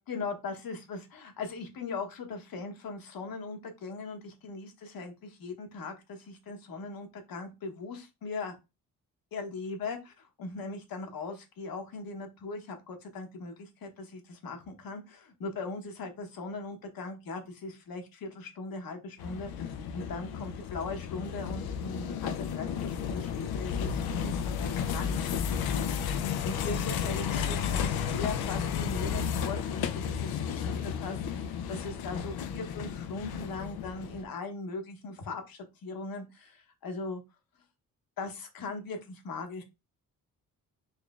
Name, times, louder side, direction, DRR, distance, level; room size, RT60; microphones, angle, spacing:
voice 1, 0.0-8.5 9.3-37.2 38.2-39.6, left 3 dB, 70° left, 4 dB, 1.1 m, -39 dB
sound 1, 19.2-34.2, left 7 dB, 85° left, 0.5 m, -33 dB
4.1 x 3.1 x 2.4 m, 0.25 s
cardioid pair, 70°, 36 cm